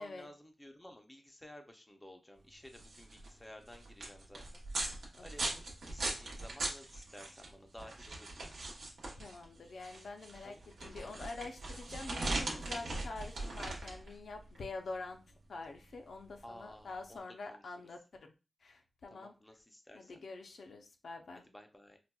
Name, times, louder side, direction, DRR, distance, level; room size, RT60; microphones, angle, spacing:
voice 1, 0.0-4.4 5.2-5.4 5.9-8.3 10.4-10.6 16.4-17.7 19.1-20.1 21.5-22.0, left 1 dB, 10° left, 4 dB, 0.4 m, -54 dB
sound 1, 2.6-17.1, right 2 dB, 80° right, 0.8 m, -41 dB
voice 2, 5.1-5.6 9.2-18.3 18.6-19.3 19.9-21.4, left 3 dB, 75° left, 4 dB, 0.4 m, -46 dB
4.0 x 2.1 x 2.2 m, 0.30 s
wide cardioid pair, 150°, 0 cm